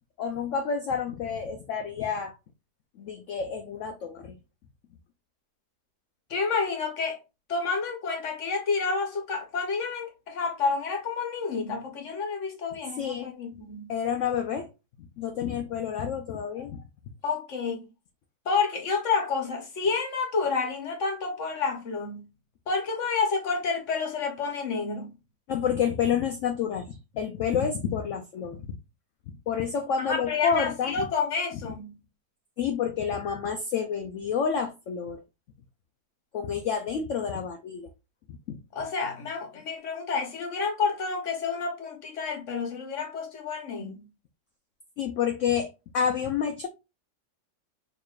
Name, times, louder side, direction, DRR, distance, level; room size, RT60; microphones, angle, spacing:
voice 1, 0.2-2.3 3.0-4.4 13.0-13.3 13.9-14.7 15.2-16.8 25.5-28.8 29.5-30.9 32.6-35.2 36.3-37.9 38.5-38.6 45.0-46.7, left 7 dB, 70° left, 0.7 m, -29 dB
voice 2, 6.3-7.2 7.5-13.9 17.2-17.9 18.4-22.3 22.7-25.1 30.0-32.0 38.7-44.1, left 4 dB, 55° left, 1.2 m, -29 dB
4.7 x 3.0 x 2.4 m
omnidirectional pair, 1.8 m